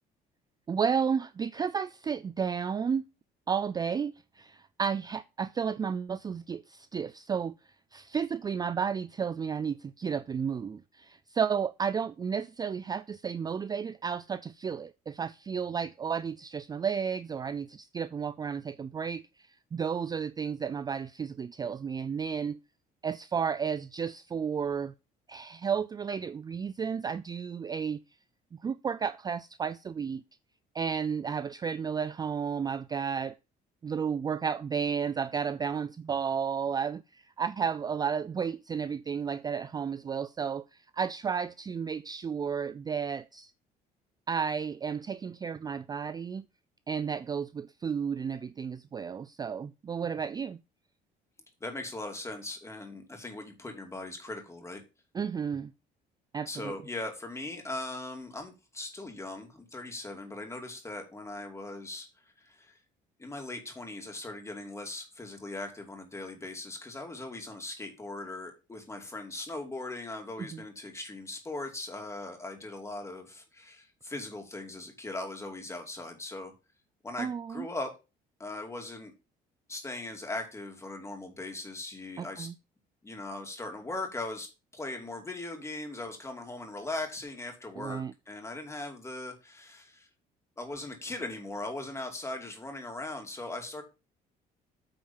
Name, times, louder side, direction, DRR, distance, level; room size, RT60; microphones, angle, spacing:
voice 1, 0.7-3.1 3.5-7.5 7.9-19.2 19.7-22.6 23.0-24.9 25.3-28.0 28.6-30.2 30.7-33.3 33.8-40.6 40.9-43.5 44.3-46.4 46.9-50.6 55.1-55.7 56.3-56.7 70.4-70.6 77.2-77.7 82.2-82.5 87.8-88.1, right 6 dB, 25° right, 0.3 m, -32 dB
voice 2, 51.6-54.8 56.4-62.1 62.4-62.7 63.2-76.5 77.0-77.9 78.4-79.1 79.7-82.5 83.0-84.5 84.7-90.1 90.6-93.8, left 2 dB, 15° left, 2.6 m, -39 dB
8.8 x 4.4 x 5.4 m
cardioid pair, 110°, 17 cm